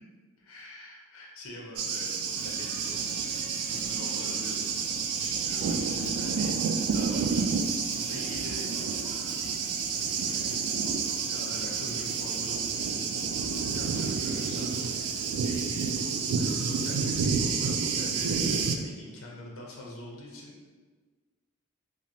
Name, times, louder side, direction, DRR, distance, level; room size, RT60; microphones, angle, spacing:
voice 1, 0.4-3.0 3.7-4.6 5.2-7.5 7.9-8.7 9.3-9.8 10.2-10.6 11.2-13.1 13.7-20.7, left 1 dB, 70° left, -2 dB, 0.6 m, -44 dB
Thunder, 1.8-18.8, right 5 dB, 80° right, 0.3 m, -29 dB
sound 1, 2.3-14.9, equal, 25° right, 1.0 m, -48 dB
2.9 x 2.4 x 2.7 m, 1.4 s
head